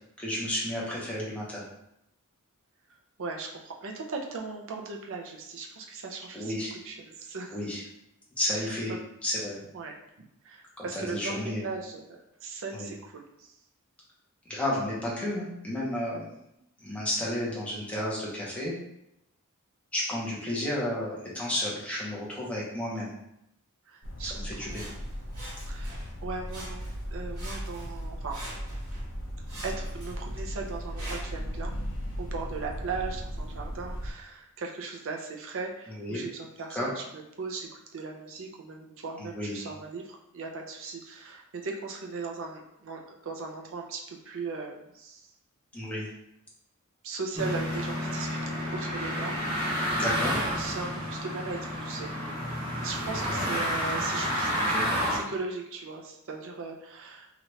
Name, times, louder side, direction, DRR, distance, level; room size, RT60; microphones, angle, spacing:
voice 1, 0.2-1.6 6.3-6.7 7.5-7.8 8.4-8.9 9.2-9.6 10.8-11.6 12.7-12.9 14.5-16.3 16.8-18.7 19.9-23.2 24.3-24.9 35.9-36.2 36.7-36.9 39.2-39.7 45.7-46.1 50.0-50.3 53.4-53.5 54.7-54.9, left 1 dB, 5° left, -6 dB, 0.8 m, -32 dB
voice 2, 3.2-7.6 8.5-9.0 9.7-9.9 10.4-13.5 23.9-24.8 25.7-26.8 27.1-28.4 29.6-31.7 32.2-45.3 47.0-48.4 48.7-49.4 50.6-52.1 52.8-54.5 55.1-57.3, right 4 dB, 60° right, 1 dB, 0.5 m, -38 dB
sound 1, 24.0-34.1, equal, 55° left, 0.6 m, -37 dB
Sawing, 24.7-26.2 26.5-27.1 27.3-29.0 29.5-31.5 32.1-32.2, right 1 dB, 85° right, 1.2 m, -45 dB
sound 2, 47.4-55.2, equal, 25° right, 0.8 m, -30 dB
2.9 x 2.4 x 3.1 m, 0.82 s
head